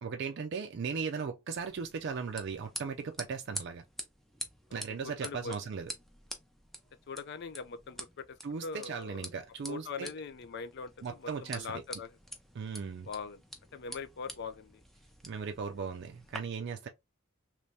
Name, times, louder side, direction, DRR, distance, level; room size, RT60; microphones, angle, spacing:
voice 1, 0.0-3.8 4.7-5.9 8.4-10.1 11.0-11.8 12.5-13.1 15.2-16.9, right 5 dB, 55° right, 0.4 m, -37 dB
sound 1, 1.6-16.4, equal, ahead, 0.5 m, -47 dB
voice 2, 4.7-5.5 7.1-9.2 9.7-12.2 13.0-13.4 13.7-14.8, left 5 dB, 55° left, 0.4 m, -42 dB
3.3 x 3.1 x 2.6 m
head